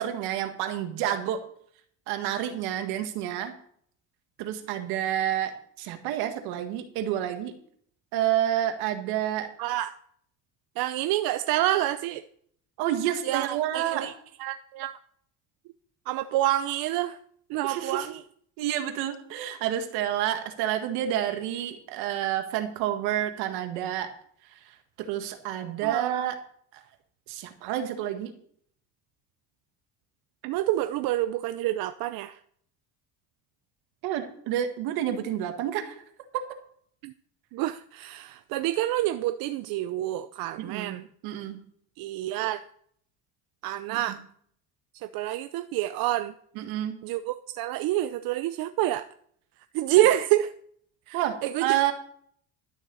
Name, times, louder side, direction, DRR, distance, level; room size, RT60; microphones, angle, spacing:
voice 1, 0.0-1.4 2.1-3.6 4.4-5.5 5.8-7.5 8.1-9.5 12.8-14.1 17.6-18.1 18.6-24.1 24.7-26.4 26.7-26.8 27.3-28.3 34.0-36.0 36.3-36.5 40.6-41.0 41.2-41.6 43.9-44.2 46.6-47.0 50.0-50.1 51.1-51.9, right 11 dB, 85° right, 6 dB, 1.8 m, -29 dB
voice 2, 9.6-9.9 10.8-12.2 13.2-14.1 14.4-15.0 16.1-17.2 17.5-18.2 25.8-26.2 30.4-32.4 37.0-37.1 37.5-41.1 42.0-42.6 43.6-44.2 45.0-46.3 47.0-49.1 49.7-50.5 51.1-51.7, right 14 dB, 70° right, 10 dB, 0.7 m, -28 dB
12.0 x 6.6 x 6.9 m, 0.63 s
cardioid pair, 130°, 37 cm